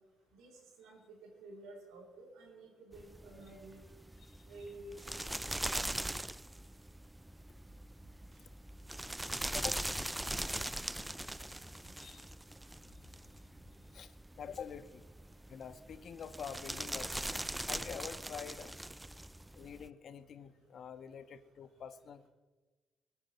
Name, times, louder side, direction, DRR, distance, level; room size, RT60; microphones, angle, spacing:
voice 1, 0.3-3.8 4.5-5.4 5.7-6.1, right 2 dB, 90° right, -4 dB, 4.1 m, -52 dB
sound 1, 2.9-19.9, right 1 dB, 10° right, 0.4 m, -41 dB
sound 2, 7.7-12.8, right 3 dB, 50° right, 3.5 m, -63 dB
voice 2, 9.5-10.3 12.0-12.3 12.9-13.1 13.9-15.0 15.5-17.1 17.7-18.8 19.5-22.3, left 7 dB, 60° left, 10 dB, 1.3 m, -47 dB
24.5 x 9.1 x 5.8 m, 1.2 s
cardioid pair, 90°, 0 cm